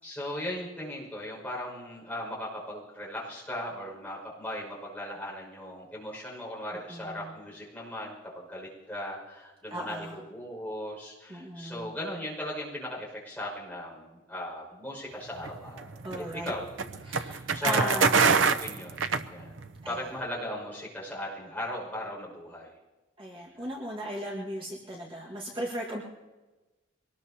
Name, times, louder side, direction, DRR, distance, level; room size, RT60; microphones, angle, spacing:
voice 1, 0.0-16.6 17.0-22.7 23.5-23.7, left 1 dB, 10° left, -4 dB, 5.8 m, -38 dB
voice 2, 6.9-7.3 9.7-10.2 11.3-11.9 16.0-16.5 17.0-18.5 19.8-20.0 23.2-26.0, right 1 dB, 25° right, -4 dB, 1.8 m, -36 dB
sound 1, 15.4-19.8, right 5 dB, 75° right, 0.7 m, -26 dB
23.5 x 19.5 x 2.9 m, 1.2 s
head